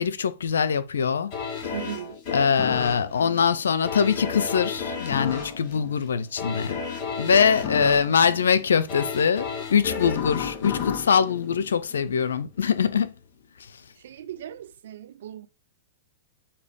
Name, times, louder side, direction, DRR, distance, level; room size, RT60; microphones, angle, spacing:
voice 1, 0.0-1.3 2.3-6.8 7.2-13.1, left 6 dB, 80° left, 0.6 m, -23 dB
sound 1, 1.3-12.3 12.7-12.8, left 6 dB, 45° left, 3.8 m, -33 dB
voice 2, 1.7-2.2 14.0-15.5, right 10 dB, 70° right, 0.6 m, -38 dB
6.8 x 2.8 x 5.2 m
hypercardioid pair, 120°, 0 cm